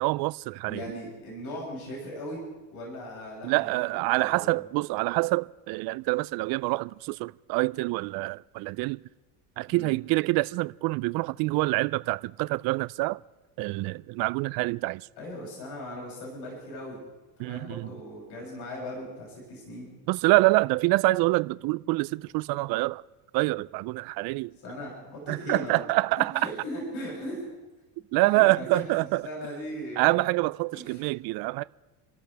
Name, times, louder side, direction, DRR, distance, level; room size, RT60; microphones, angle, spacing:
voice 1, 0.0-0.8 3.4-9.0 9.6-13.2 13.6-15.1 17.4-17.9 20.1-23.0 23.3-24.5 25.3-26.5 28.1-29.2 30.0-31.6, right 22 dB, 55° right, 0.5 m, -26 dB
voice 2, 0.7-2.4 2.7-3.7 4.2-4.6 9.7-9.9 15.2-17.0 17.4-20.0 24.6-25.8 26.4-27.5 28.2-30.3 30.7-31.0, equal, 60° left, 7.6 m, -38 dB
29.5 x 13.5 x 3.4 m
supercardioid pair, 105°, 45 cm